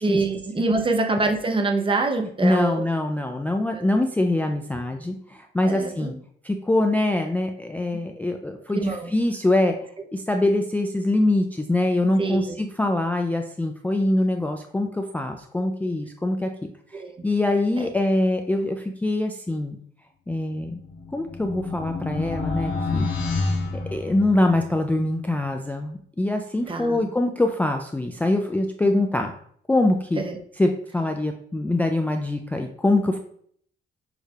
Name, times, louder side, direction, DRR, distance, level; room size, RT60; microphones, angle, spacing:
voice 1, 0.0-2.8 3.7-3.9 5.7-6.1 8.7-9.1 12.2-12.6 16.9-17.1 17.8-17.9 26.7-27.0 30.2-30.4, right 3 dB, 25° right, 5 dB, 0.7 m, -25 dB
voice 2, 2.2-6.1 6.4-9.8 10.1-16.5 16.9-19.8 20.3-20.8 21.1-23.1 23.9-29.3 29.7-30.2 30.6-33.2, left 2 dB, 10° left, 4 dB, 0.3 m, -24 dB
sound 1, 20.7-24.6, left 3 dB, 75° left, 1.5 m, -28 dB
6.3 x 3.3 x 2.4 m, 0.63 s
cardioid pair, 90°, 20 cm